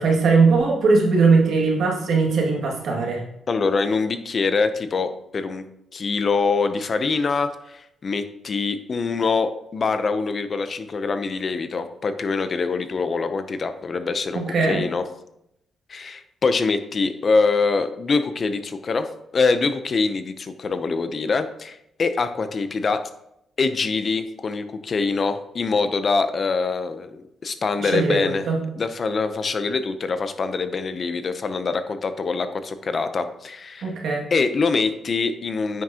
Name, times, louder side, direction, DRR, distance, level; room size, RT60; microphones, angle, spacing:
voice 1, 0.0-3.2 14.3-14.8 27.8-28.6 33.8-34.2, right 4 dB, 70° right, -1 dB, 2.1 m, -20 dB
voice 2, 3.5-5.6 5.9-15.0 15.9-23.0 23.6-28.4 28.8-33.9 34.3-35.8, left 4 dB, 45° left, 10 dB, 0.6 m, -24 dB
9.2 x 6.1 x 2.9 m, 0.79 s
cardioid pair, 90°, 0 cm